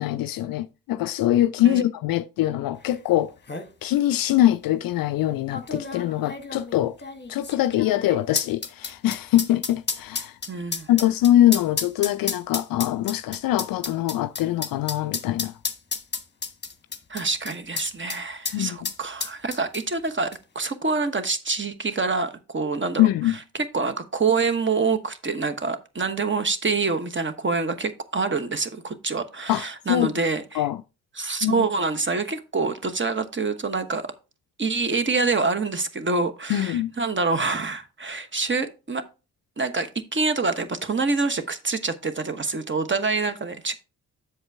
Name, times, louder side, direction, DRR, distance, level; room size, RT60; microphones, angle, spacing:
voice 1, 0.0-3.3 3.8-7.0 7.3-10.4 10.9-15.6 18.5-18.9 23.0-23.4 29.5-30.1 30.5-30.8 31.4-31.7 36.5-36.9, left 13 dB, 50° left, 0.5 m, -23 dB
sound 1, 3.0-3.1 3.3-3.7 4.5-4.6 5.5-18.2 18.5-18.6 18.8-20.1 20.3-20.4, left 4 dB, 20° left, 1.2 m, -31 dB
voice 2, 10.5-10.9 17.1-23.1 23.7-30.6 31.2-34.1 34.6-39.0 39.6-43.7, right 4 dB, 25° right, 1.1 m, -26 dB
7.8 x 6.6 x 3.4 m
hypercardioid pair, 40°, 46 cm